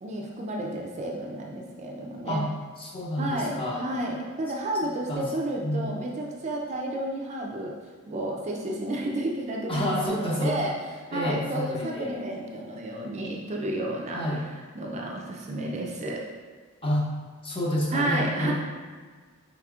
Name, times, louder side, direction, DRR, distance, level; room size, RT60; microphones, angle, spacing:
voice 1, 0.0-2.5 3.2-7.7 8.1-10.7 11.1-14.2 14.8-16.2 17.9-18.5, right 1 dB, 30° right, -1 dB, 0.4 m, -31 dB
voice 2, 2.8-3.8 5.1-5.2 5.6-5.8 9.7-10.5 11.1-12.2 14.1-14.4 16.8-17.1 17.4-18.5, left 1 dB, 25° left, -4 dB, 0.7 m, -28 dB
4.9 x 3.4 x 2.3 m, 1.5 s
head